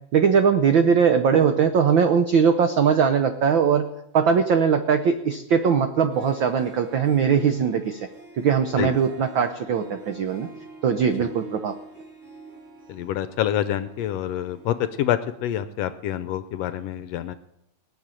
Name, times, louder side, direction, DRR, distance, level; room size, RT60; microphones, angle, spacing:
voice 1, 0.1-3.8 4.1-8.1 8.4-10.5 10.8-11.7, right 6 dB, 85° right, 8 dB, 1.0 m, -20 dB
Harp, 6.1-15.6, right 3 dB, 45° right, 8.0 m, -45 dB
voice 2, 12.9-17.4, left 11 dB, 75° left, 12 dB, 1.6 m, -27 dB
19.0 x 6.7 x 8.9 m, 0.82 s
omnidirectional pair, 3.3 m